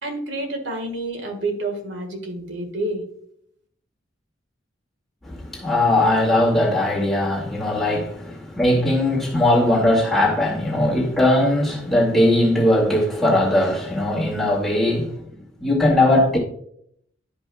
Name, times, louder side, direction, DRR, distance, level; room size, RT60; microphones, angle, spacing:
voice 1, 0.0-3.0, right 2 dB, 75° right, 1.6 m, -28 dB
voice 2, 5.2-15.1 15.6-16.4, left 1 dB, ahead, 2.0 m, -19 dB
12.0 x 5.3 x 2.3 m
head